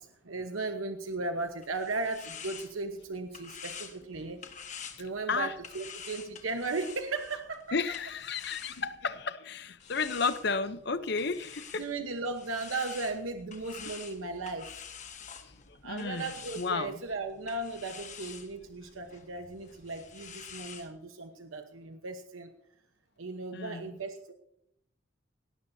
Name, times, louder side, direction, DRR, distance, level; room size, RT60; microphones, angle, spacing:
voice 1, 0.0-4.4 5.0-7.8 11.8-14.7 15.8-22.5 23.2-24.3, right 3 dB, 85° right, 6 dB, 1.1 m, -36 dB
sound 1, 1.4-9.2 9.8-20.9, left 7 dB, 35° left, 1.4 m, -48 dB
voice 2, 7.7-11.9 15.4-16.3 16.6-17.0 23.5-23.9, left 4 dB, 55° left, 12 dB, 0.8 m, -33 dB
19.0 x 17.5 x 2.8 m, 0.73 s
head